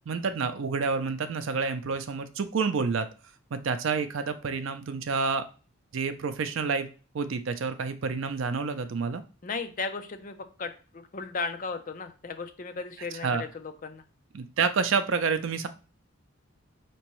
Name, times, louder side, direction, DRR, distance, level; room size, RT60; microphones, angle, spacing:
voice 1, 0.1-3.1 3.5-5.5 5.9-6.9 7.1-9.2 13.2-13.4 14.3-15.7, right 5 dB, 70° right, 10 dB, 0.5 m, -28 dB
voice 2, 9.4-14.0, left 4 dB, 40° left, 8 dB, 0.5 m, -36 dB
4.5 x 2.9 x 3.0 m, 0.36 s
head